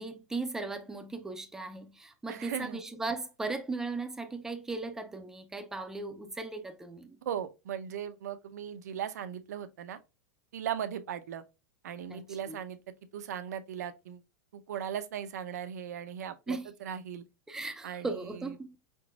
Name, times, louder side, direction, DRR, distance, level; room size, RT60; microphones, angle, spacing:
voice 1, 0.0-7.2 12.1-12.6 16.5-16.7 17.5-18.7, right 3 dB, 5° right, 0.4 m, -37 dB
voice 2, 2.3-2.8 7.3-10.0 10.5-11.4 11.8-12.8 13.1-14.2 14.5-17.2 17.8-18.5, right 9 dB, 85° right, 0.7 m, -38 dB
4.8 x 3.8 x 2.3 m
supercardioid pair, 160°, 9 cm